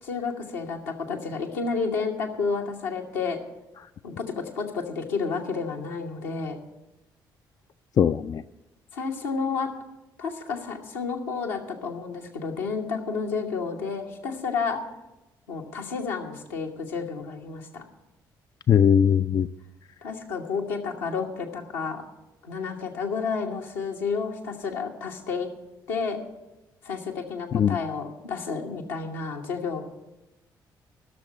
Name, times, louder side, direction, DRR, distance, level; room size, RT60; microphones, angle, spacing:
voice 1, 0.0-3.4 4.0-6.6 8.9-9.7 10.2-14.8 15.5-17.8 20.0-22.0 22.4-25.5 25.9-26.2 26.8-29.8, left 5 dB, 75° left, 1 dB, 1.3 m, -31 dB
voice 2, 8.0-8.4 18.7-19.5 27.5-27.8, left 8 dB, 35° left, 12 dB, 0.3 m, -20 dB
12.0 x 6.6 x 9.5 m, 0.98 s
figure-of-eight pair, 40°, 11 cm